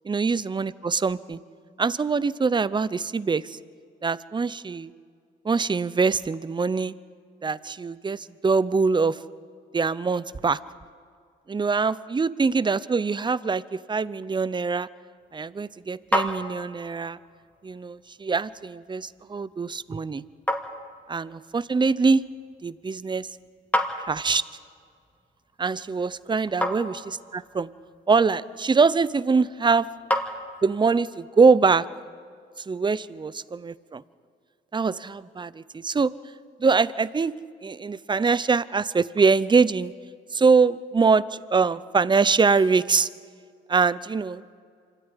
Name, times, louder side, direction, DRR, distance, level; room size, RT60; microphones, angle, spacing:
voice 1, 0.1-1.4 1.8-3.6 4.0-4.9 5.4-6.9 7.4-9.2 9.7-10.6 11.5-14.9 15.3-17.2 17.6-20.2 21.1-22.2 22.6-23.3 23.9-24.4 25.6-27.7 28.1-29.9 30.6-31.9 32.7-34.0 34.7-36.1 36.6-37.3 37.6-39.9 40.3-43.1 43.7-44.4, right 4 dB, 25° right, 17 dB, 0.7 m, -23 dB
sound 1, 15.2-31.0, left 1 dB, 5° left, 2.3 m, -34 dB
25.5 x 13.5 x 9.9 m, 2.2 s
cardioid pair, 90°, 20 cm